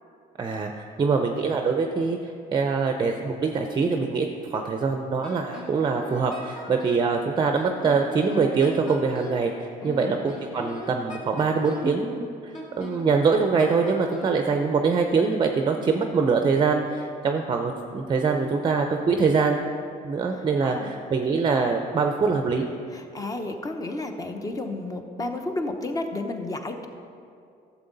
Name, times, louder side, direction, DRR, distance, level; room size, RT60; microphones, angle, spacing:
voice 1, 0.4-19.6 20.0-22.7, right 4 dB, 30° right, 4 dB, 0.5 m, -24 dB
Wind instrument woodwind instrument, 5.2-7.1 7.5-9.5 10.0-12.0 12.5-14.4, left 2 dB, 45° left, 1.9 m, -40 dB
voice 2, 9.8-10.2 20.6-20.9 22.9-26.9, left 2 dB, 20° left, 6 dB, 0.8 m, -32 dB
12.0 x 7.2 x 3.9 m, 2.4 s
cardioid pair, 110°, 17 cm